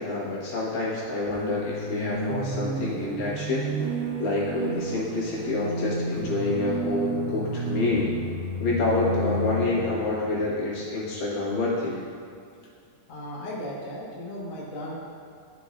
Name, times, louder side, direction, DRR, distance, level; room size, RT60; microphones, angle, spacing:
voice 1, 0.0-3.7 4.2-8.1 8.6-12.0, left 2 dB, 90° left, -6 dB, 3.2 m, -27 dB
sound 1, 1.3-11.2, right 2 dB, 70° right, 1.2 m, -31 dB
sound 2, 6.5-10.9, right 4 dB, 85° right, 2.3 m, -44 dB
voice 2, 13.1-14.9, left 1 dB, 50° left, -6 dB, 0.9 m, -36 dB
11.5 x 5.9 x 2.5 m, 2.3 s
omnidirectional pair, 3.8 m